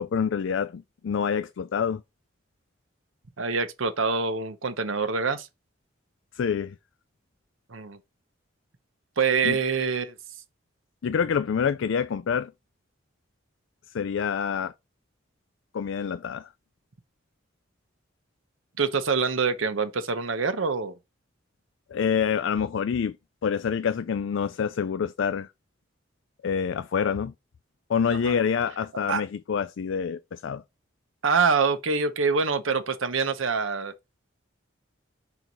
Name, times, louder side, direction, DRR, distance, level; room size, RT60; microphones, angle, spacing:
voice 1, 0.0-2.0 6.3-6.8 9.4-9.6 11.0-12.5 13.9-14.7 15.7-16.5 21.9-23.2 23.4-25.5 26.4-27.3 27.9-30.6, left 7 dB, 75° left, 0.4 m, -27 dB
voice 2, 3.4-5.5 7.7-8.0 9.2-10.2 18.8-21.0 28.1-28.4 29.1-29.2 31.2-33.9, right 5 dB, 85° right, 0.9 m, -25 dB
4.6 x 4.0 x 5.3 m
head